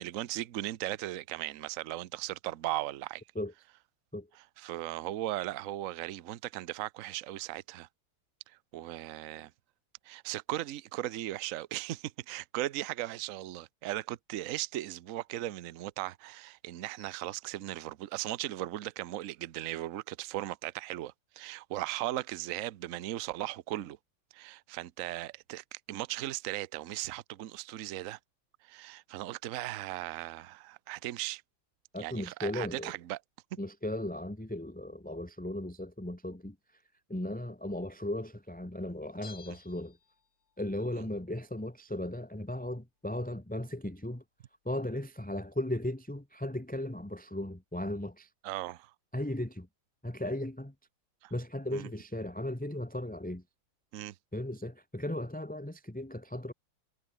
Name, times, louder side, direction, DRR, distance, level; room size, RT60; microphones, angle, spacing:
voice 1, 0.0-3.2 4.3-7.9 8.7-9.5 10.0-24.0 24.3-28.2 28.6-31.4 32.0-33.2 39.5-39.6 40.9-41.0 48.4-48.9 51.2-51.3 51.7-51.9 53.9-54.1, right 15 dB, 60° right, 0.8 m, -37 dB
voice 2, 31.9-32.9 33.6-36.5 37.1-39.9 40.6-44.2 44.6-48.3 49.1-49.7 50.0-50.7 51.3-53.4 54.3-56.5, left 1 dB, 5° left, 1.5 m, -36 dB
Bell, 39.2-40.6 40.9-41.0, left 6 dB, 90° left, 3.6 m, -54 dB
omnidirectional pair, 2.3 m